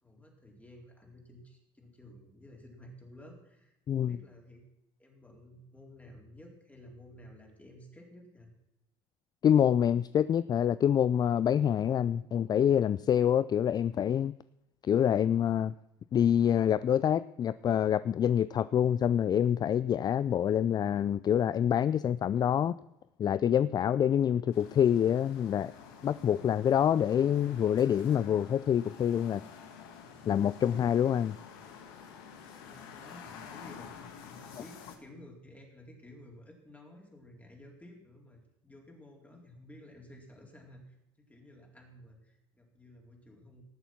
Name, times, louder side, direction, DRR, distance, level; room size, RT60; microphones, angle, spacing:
voice 1, 0.0-4.6 5.0-8.5 32.6-43.6, left 1 dB, 10° left, 4.1 m, -53 dB
voice 2, 9.4-14.3 14.8-15.7 16.1-22.7 23.2-25.7 26.0-29.4 30.3-31.4, left 9 dB, 35° left, 0.4 m, -26 dB
sound 1, 24.5-35.0, left 7 dB, 80° left, 1.7 m, -49 dB
19.0 x 7.0 x 6.1 m
hypercardioid pair, 75°, 12 cm